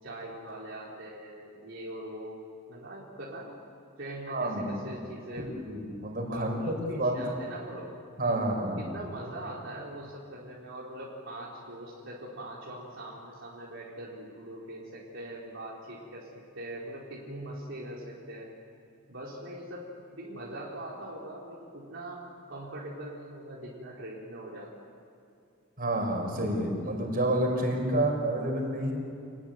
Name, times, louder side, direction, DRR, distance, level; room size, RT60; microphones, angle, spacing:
voice 1, 0.0-3.6 4.0-5.7 6.2-7.9 8.8-18.5 19.1-24.8, right 1 dB, 65° right, -5 dB, 4.1 m, -42 dB
voice 2, 4.3-4.9 5.6-7.3 8.2-8.8 25.8-28.9, right 1 dB, 45° right, 2 dB, 5.5 m, -29 dB
28.0 x 19.5 x 9.5 m, 2.5 s
head